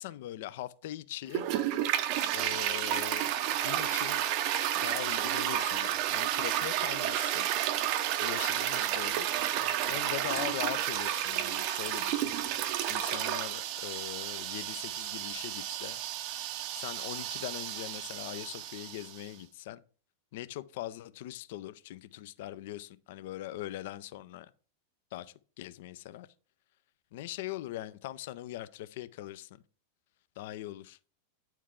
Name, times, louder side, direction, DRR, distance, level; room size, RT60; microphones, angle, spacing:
voice 1, 0.0-1.5 2.3-3.3 3.6-4.2 4.8-7.5 8.2-9.4 9.9-12.4 12.9-16.0 16.7-19.8 20.3-24.5 25.1-26.3 27.1-29.6 30.4-31.0, left 14 dB, 50° left, 0.4 m, -41 dB
Toilet flush, 1.3-19.2, right 11 dB, 45° right, 0.5 m, -31 dB
9.1 x 4.5 x 3.6 m
figure-of-eight pair, 90°, 0 cm